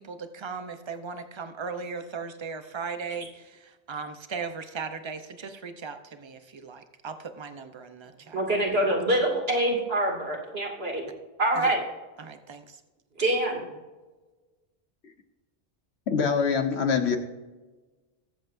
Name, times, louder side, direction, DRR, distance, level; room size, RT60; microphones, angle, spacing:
voice 1, 0.0-8.4 11.6-11.7 12.2-12.8, right 5 dB, 30° right, 8 dB, 0.8 m, -38 dB
voice 2, 8.3-11.0 11.4-11.8 13.2-13.6, right 1 dB, 70° right, -1 dB, 2.7 m, -25 dB
voice 3, 16.1-17.2, left 6 dB, 90° left, 5 dB, 1.4 m, -24 dB
20.5 x 7.9 x 2.6 m, 1.2 s
omnidirectional pair, 1.1 m